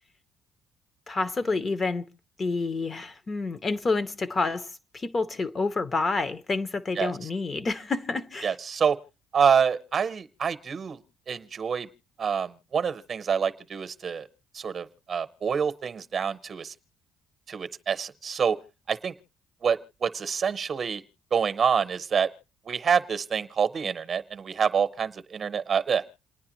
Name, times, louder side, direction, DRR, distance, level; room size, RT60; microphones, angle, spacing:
voice 1, 1.1-2.0 2.4-8.5, left 3 dB, 35° left, 0.7 m, -28 dB
voice 2, 8.4-9.0 9.3-11.0 11.3-11.9 12.2-14.3 14.5-16.7 17.5-18.6 18.9-19.1 19.6-21.0 21.3-22.3 22.7-26.0, right 6 dB, 45° right, 0.8 m, -27 dB
28.0 x 9.6 x 3.0 m
cardioid pair, 85°, 0 cm